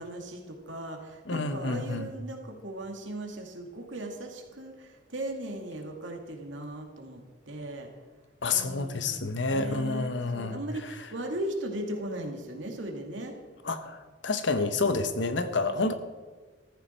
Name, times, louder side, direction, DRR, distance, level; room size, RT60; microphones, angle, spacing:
voice 1, 0.0-7.9 8.5-13.4 15.6-15.8, right 1 dB, 85° right, 2 dB, 2.4 m, -38 dB
voice 2, 1.3-2.1 8.4-10.6 13.6-15.9, left 3 dB, 75° left, 10 dB, 1.1 m, -29 dB
14.0 x 14.0 x 4.5 m, 1.4 s
head